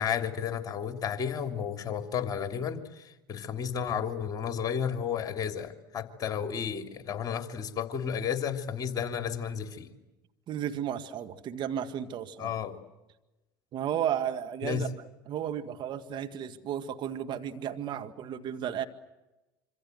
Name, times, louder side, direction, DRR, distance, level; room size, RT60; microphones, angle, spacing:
voice 1, 0.0-9.9 12.4-12.8 14.6-14.8, left 8 dB, 35° left, 6 dB, 3.1 m, -32 dB
voice 2, 10.5-12.5 13.7-14.9 15.3-18.8, right 9 dB, 45° right, 7 dB, 1.9 m, -33 dB
26.5 x 25.5 x 8.0 m, 1.0 s
hypercardioid pair, 75°, 11 cm